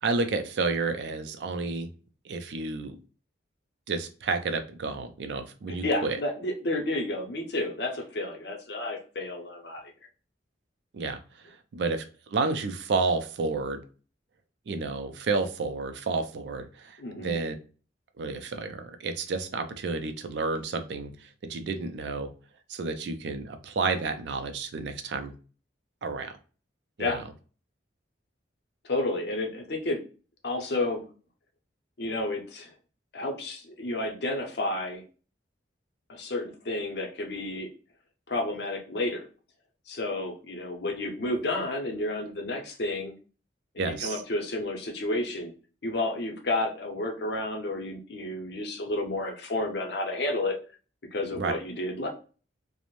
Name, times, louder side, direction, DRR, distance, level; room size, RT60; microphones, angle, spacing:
voice 1, 0.0-1.9 2.3-3.0 3.9-6.2 10.9-11.2 11.7-12.0 12.3-13.8 14.7-17.5 18.2-21.1 21.5-22.3 22.7-25.3 26.0-26.3 27.0-27.2 43.8-44.2 51.3-51.5, right 4 dB, 65° right, 7 dB, 0.4 m, -30 dB
voice 2, 5.7-9.9 17.0-17.4 27.0-27.2 28.8-30.0 30.4-31.0 32.0-32.7 33.1-35.0 36.1-37.7 38.3-39.2 39.9-43.1 43.7-45.5 45.8-50.6 51.1-52.1, left 2 dB, 60° left, 2 dB, 0.6 m, -31 dB
2.5 x 2.0 x 3.0 m, 0.37 s
head